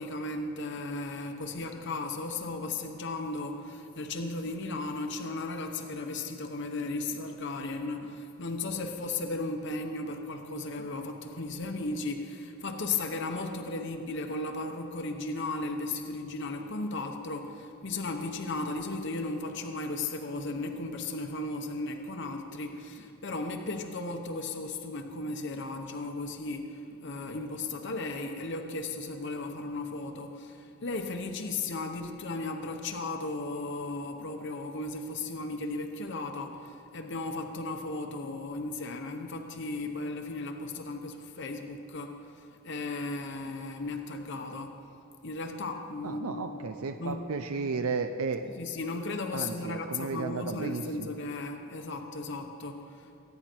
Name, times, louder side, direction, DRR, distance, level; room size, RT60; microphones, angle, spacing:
voice 1, 0.0-44.8 45.2-46.6 47.0-47.3 48.4-53.2, left 2 dB, 55° left, 4 dB, 0.9 m, -35 dB
voice 2, 46.0-48.4 49.3-51.1, right 4 dB, 75° right, 7 dB, 0.6 m, -33 dB
23.5 x 9.8 x 4.5 m, 2.6 s
head